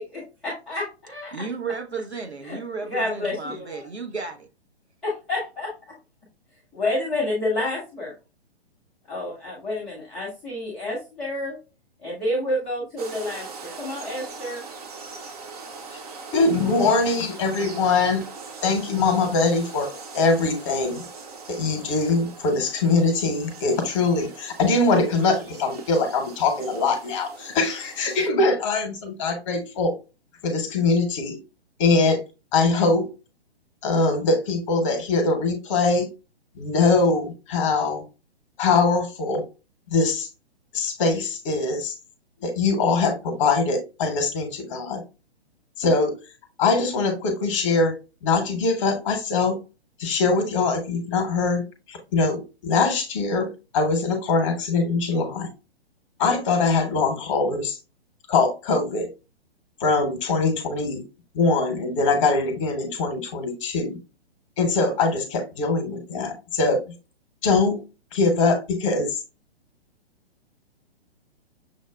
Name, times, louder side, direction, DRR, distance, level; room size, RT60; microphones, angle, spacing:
voice 1, 0.0-1.3 2.4-2.6 2.9-3.9 5.0-5.7 6.7-8.1 9.1-11.6 12.0-14.6, left 1 dB, ahead, 0.3 m, -29 dB
voice 2, 1.3-4.5, right 4 dB, 90° right, 0.8 m, -33 dB
sound 1, 13.0-28.3, right 4 dB, 35° right, 0.7 m, -41 dB
voice 3, 16.3-18.2 18.6-21.0 21.5-29.9 30.4-31.4 31.8-32.2 32.5-33.1 33.8-36.1 36.6-38.0 38.6-39.4 39.9-40.3 40.7-41.9 42.4-45.0 45.8-46.2 46.6-49.6 50.0-55.5 56.2-57.8 58.3-59.1 59.8-61.0 61.3-64.0 64.6-66.8 67.4-67.8 68.1-69.2, left 3 dB, 30° left, 0.9 m, -22 dB
6.3 x 2.1 x 2.3 m
figure-of-eight pair, 120°, 32 cm